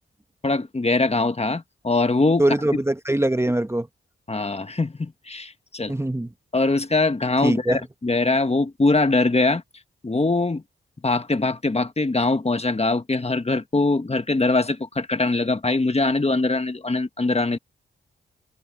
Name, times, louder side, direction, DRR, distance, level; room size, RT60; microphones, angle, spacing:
voice 1, 0.4-2.4 4.3-5.9 6.5-9.6 10.0-10.6 11.0-17.6, left 3 dB, 30° left, 1.5 m, -22 dB
voice 2, 2.4-3.9 5.9-6.3 7.4-7.8, right 1 dB, 10° right, 1.3 m, -22 dB
cardioid pair, 50°, 21 cm